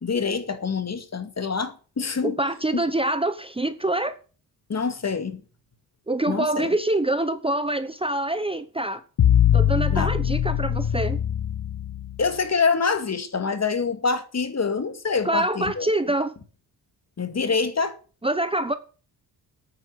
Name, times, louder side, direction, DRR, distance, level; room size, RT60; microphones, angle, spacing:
voice 1, 0.0-2.4 4.7-5.4 6.3-6.7 9.9-10.1 12.2-15.9 17.2-18.0, left 5 dB, 35° left, 2.3 m, -26 dB
voice 2, 2.2-4.2 6.1-9.0 9.5-11.2 15.2-16.3 18.2-18.7, right 1 dB, 15° right, 1.0 m, -25 dB
sound 1, 9.2-12.3, left 9 dB, 55° left, 1.2 m, -22 dB
9.3 x 8.9 x 8.1 m
cardioid pair, 75°, 43 cm